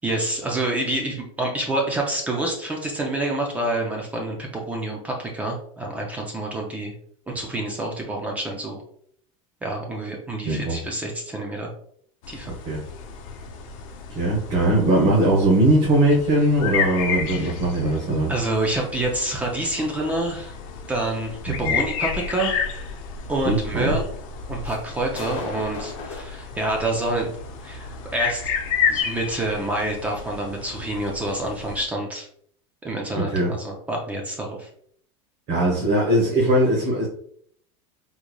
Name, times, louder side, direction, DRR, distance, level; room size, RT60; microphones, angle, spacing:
voice 1, 0.0-6.9 7.3-8.8 9.6-11.7 12.3-12.5 17.3-17.5 18.3-20.6 20.9-22.6 23.3-24.1 24.5-27.3 27.6-28.5 28.9-32.3 32.8-34.7, right 2 dB, 10° right, 0 dB, 0.4 m, -27 dB
voice 2, 10.5-10.8 12.6-12.8 14.1-18.3 21.6-21.7 23.4-24.0 33.1-33.5 35.5-37.1, right 1 dB, 40° right, -4 dB, 1.0 m, -20 dB
sound 1, 12.2-31.8, left 6 dB, 75° left, 0.7 m, -31 dB
sound 2, 23.6-26.2, left 4 dB, 30° left, 0.7 m, -36 dB
3.7 x 3.1 x 2.2 m, 0.62 s
supercardioid pair, 175°, 17 cm